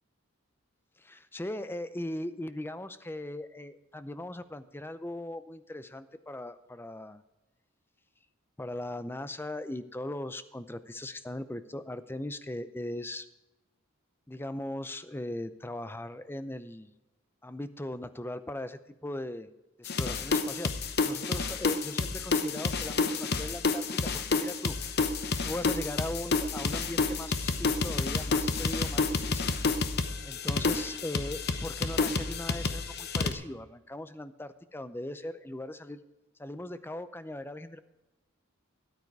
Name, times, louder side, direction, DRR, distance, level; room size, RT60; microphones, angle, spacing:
voice 1, 1.0-7.2 8.6-13.3 14.3-16.9 17.4-19.5 19.8-20.8 21.0-25.1 25.4-29.4 30.2-36.0 36.4-37.8, left 1 dB, 10° left, 12 dB, 0.5 m, -39 dB
sound 1, 19.8-33.3, left 4 dB, 50° left, 0.8 m, -29 dB
13.5 x 9.6 x 4.7 m, 0.99 s
head